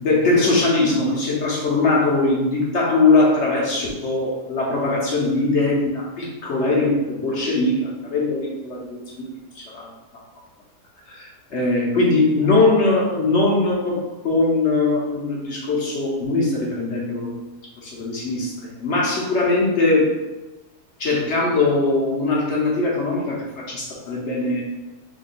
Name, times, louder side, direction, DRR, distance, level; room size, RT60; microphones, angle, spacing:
voice 1, 0.0-9.9 11.1-17.4 17.8-20.2 21.0-24.6, left 3 dB, 55° left, -3 dB, 0.9 m, -21 dB
3.7 x 2.2 x 3.9 m, 1.1 s
omnidirectional pair, 1.7 m